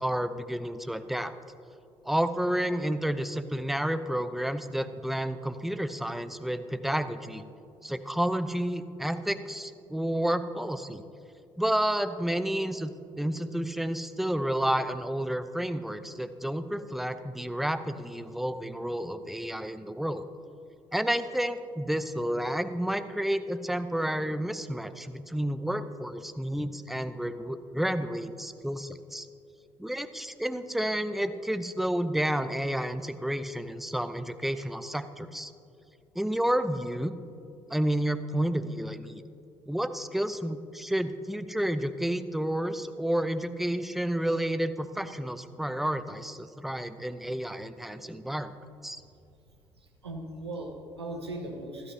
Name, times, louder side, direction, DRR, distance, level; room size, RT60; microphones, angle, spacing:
voice 1, 0.0-1.3 2.0-7.4 7.8-11.0 11.6-20.2 20.9-29.3 29.8-35.5 36.1-37.1 37.7-39.2 39.7-48.5 48.8-49.0, right 1 dB, ahead, 11 dB, 0.6 m, -30 dB
voice 2, 49.8-51.9, right 1 dB, 85° right, 2 dB, 1.0 m, -38 dB
15.0 x 13.0 x 2.8 m, 2.6 s
figure-of-eight pair, 50°, 13 cm